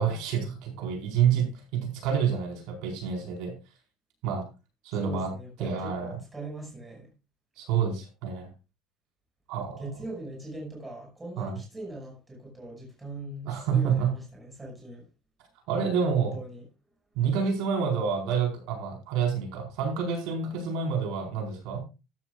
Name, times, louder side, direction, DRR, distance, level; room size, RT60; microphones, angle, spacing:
voice 1, 0.0-3.5 4.2-4.5 4.8-5.3 5.6-6.2 7.6-8.5 9.5-9.8 11.4-11.6 13.5-14.1 15.7-16.4 17.1-21.8, right 7 dB, 65° right, 4.5 m, -28 dB
voice 2, 5.0-7.1 9.8-15.1 16.1-16.6, right 1 dB, 10° right, 5.7 m, -41 dB
13.5 x 12.5 x 2.4 m
cardioid pair, 175°, 0 cm